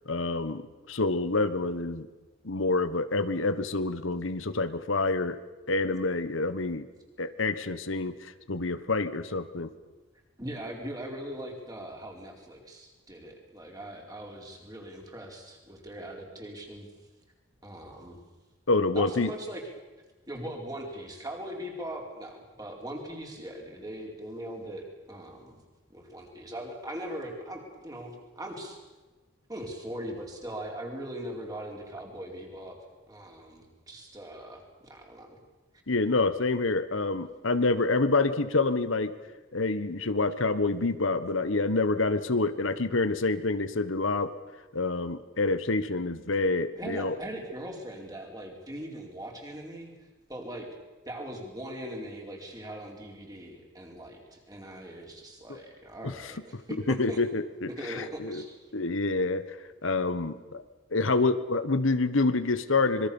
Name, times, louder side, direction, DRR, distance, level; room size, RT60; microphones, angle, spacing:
voice 1, 0.1-2.1 2.4-5.4 5.7-6.9 7.2-9.7 18.7-19.3 35.9-39.1 39.5-44.3 44.7-47.2 55.5-55.6 56.0-56.6 56.9-58.4 58.7-59.4 59.8-60.6 60.9-63.1, left 3 dB, 80° left, 12 dB, 1.3 m, -27 dB
voice 2, 10.4-16.9 17.6-18.2 18.9-19.6 20.3-25.6 25.9-28.8 29.5-32.8 33.1-35.4 46.8-49.9 50.3-50.7 51.0-57.2 57.7-58.6, right 1 dB, 20° right, 1 dB, 4.7 m, -40 dB
26.0 x 22.0 x 7.1 m, 1.2 s
head